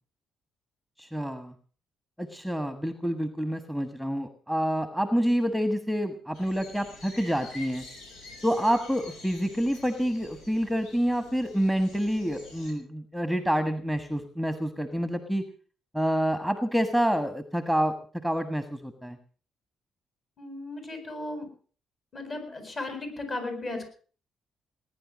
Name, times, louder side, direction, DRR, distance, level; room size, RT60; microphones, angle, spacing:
voice 1, 1.0-1.5 2.2-7.8 8.4-15.4 15.9-19.2, equal, 5° left, 9 dB, 1.4 m, -28 dB
sound 1, 6.3-12.7, left 2 dB, 85° left, 6.2 m, -48 dB
voice 2, 20.4-21.5 22.1-23.9, left 2 dB, 40° left, 6 dB, 7.7 m, -35 dB
19.0 x 10.5 x 6.2 m, 0.42 s
cardioid pair, 90°, 0 cm